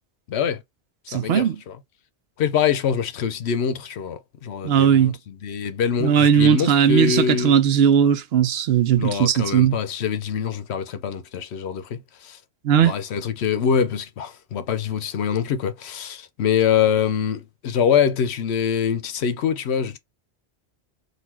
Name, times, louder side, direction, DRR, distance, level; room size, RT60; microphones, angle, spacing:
voice 1, 0.3-0.6 1.1-1.8 2.4-7.5 8.9-12.4 12.8-20.0, left 7 dB, 80° left, 0.9 m, -24 dB
voice 2, 1.1-1.6 4.6-5.2 6.0-9.8 12.6-12.9, right 8 dB, 70° right, 0.8 m, -18 dB
4.1 x 2.5 x 4.2 m
omnidirectional pair, 1.1 m